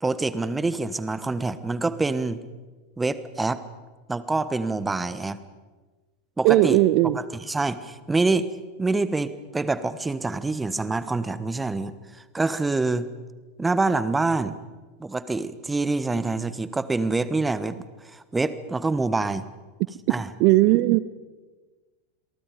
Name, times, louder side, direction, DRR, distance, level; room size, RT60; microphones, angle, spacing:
voice 1, 0.0-2.4 3.0-3.6 4.1-5.4 6.4-6.8 7.1-8.5 8.8-13.1 13.6-14.6 15.0-19.5 20.1-20.3, right 3 dB, 10° right, 15 dB, 1.2 m, -26 dB
voice 2, 6.4-7.2 20.4-21.0, right 17 dB, 50° right, 17 dB, 0.7 m, -17 dB
28.5 x 22.5 x 5.2 m, 1.3 s
figure-of-eight pair, 85°, 0 cm